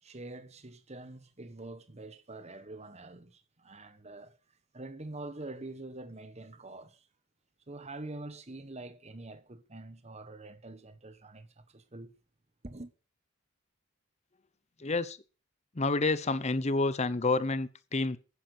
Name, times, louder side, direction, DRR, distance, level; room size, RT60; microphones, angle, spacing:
voice 1, 0.0-4.4 4.7-7.1 7.7-12.1 12.6-12.9, right 2 dB, 30° right, 1.3 m, -45 dB
voice 2, 14.8-15.2 15.7-18.2, left 3 dB, 30° left, 0.7 m, -29 dB
10.5 x 10.0 x 6.6 m
head